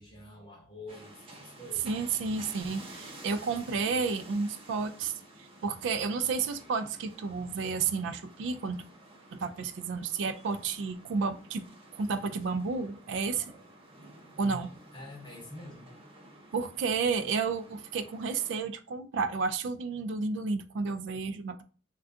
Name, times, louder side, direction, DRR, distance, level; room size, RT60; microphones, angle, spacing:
voice 1, 0.0-1.9 13.2-13.6 14.4-15.9, left 1 dB, 25° left, -2 dB, 0.8 m, -47 dB
sound 1, 0.9-18.6, right 1 dB, 30° right, 0.6 m, -52 dB
voice 2, 1.8-5.1 5.6-8.8 9.3-11.6 11.9-13.4 14.4-14.7 16.5-21.6, right 4 dB, 70° right, 11 dB, 0.3 m, -31 dB
3.5 x 2.3 x 2.5 m, 0.39 s
head